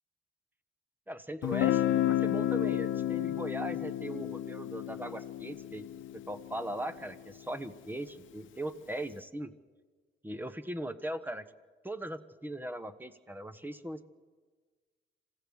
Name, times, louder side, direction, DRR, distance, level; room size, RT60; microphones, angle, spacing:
voice 1, 1.1-5.8 6.3-9.5 10.2-11.5 11.8-14.1, right 1 dB, 10° right, 11 dB, 1.2 m, -39 dB
Guitar, 1.4-7.2, left 12 dB, 75° left, 0.8 m, -32 dB
26.5 x 15.5 x 6.5 m, 1.4 s
cardioid pair, 90°, 20 cm